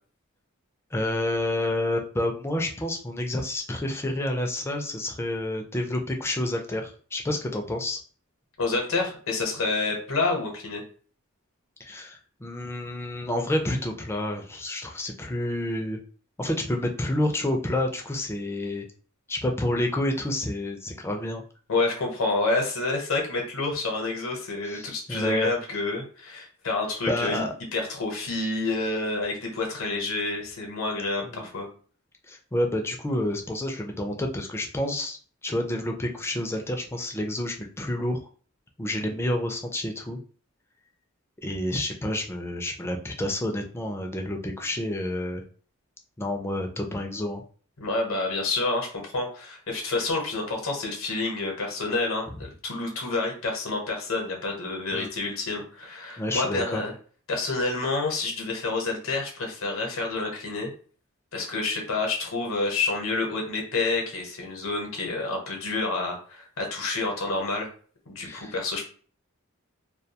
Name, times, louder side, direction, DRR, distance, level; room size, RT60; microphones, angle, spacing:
voice 1, 0.9-8.0 11.8-16.0 16.4-18.9 19.3-21.4 24.6-25.5 27.1-27.5 31.2-31.5 32.3-35.2 35.4-38.2 38.8-40.2 41.4-45.4 46.2-47.4 54.9-55.1 56.2-56.8 68.2-68.5, left 1 dB, 10° left, 2 dB, 0.4 m, -29 dB
voice 2, 8.6-10.8 21.7-27.4 27.7-31.7 47.8-56.9 57.3-60.7 61.3-67.7 68.1-68.9, left 3 dB, 80° left, 1 dB, 0.8 m, -28 dB
2.3 x 2.2 x 2.7 m, 0.42 s
head